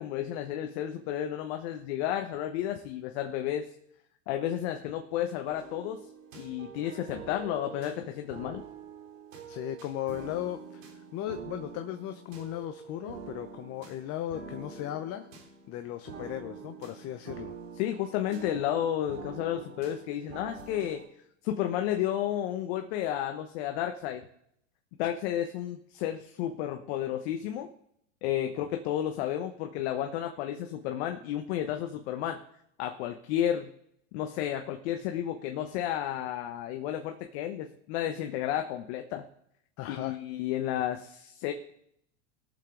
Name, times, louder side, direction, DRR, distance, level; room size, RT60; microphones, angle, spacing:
voice 1, 0.0-3.7 4.3-6.0 6.3-8.6 17.8-21.0 21.4-24.3 25.0-27.7 28.2-32.4 32.8-33.7 34.1-39.3 39.9-41.5, left 11 dB, 55° left, 5 dB, 1.1 m, -32 dB
sound 1, 5.5-21.1, right 5 dB, 90° right, 3.6 m, -46 dB
voice 2, 9.5-15.3 15.7-17.5 39.8-40.2, left 12 dB, 40° left, 7 dB, 0.9 m, -37 dB
19.0 x 7.1 x 3.9 m, 0.72 s
hypercardioid pair, 120°, 38 cm